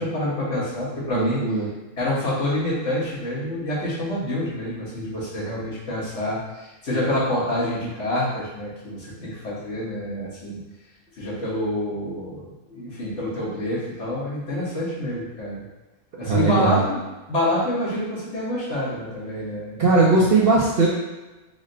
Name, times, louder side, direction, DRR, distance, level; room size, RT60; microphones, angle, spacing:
voice 1, 0.0-1.4 2.0-10.6 11.2-15.6 16.2-17.0 17.3-19.8, left 1 dB, 55° left, -8 dB, 1.6 m, -27 dB
voice 2, 1.1-1.7 16.2-16.8 19.8-20.9, right 3 dB, 55° right, -6 dB, 0.7 m, -19 dB
4.0 x 2.1 x 3.8 m, 1.1 s
omnidirectional pair, 1.4 m